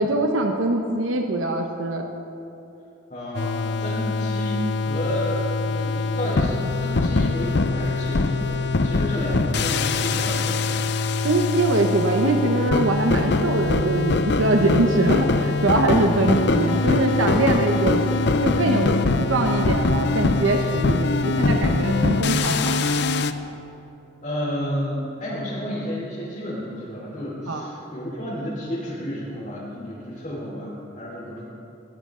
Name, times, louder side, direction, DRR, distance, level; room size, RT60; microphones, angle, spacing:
voice 1, 0.0-2.1 11.2-18.0 18.4-22.8 27.5-27.6, right 2 dB, 85° right, 3 dB, 1.0 m, -22 dB
voice 2, 3.1-10.8 16.0-16.7 24.2-31.4, equal, 40° left, -8 dB, 3.4 m, -31 dB
sound 1, 3.3-23.3, left 3 dB, 60° left, 0.6 m, -23 dB
21.0 x 15.0 x 3.8 m, 2.9 s
head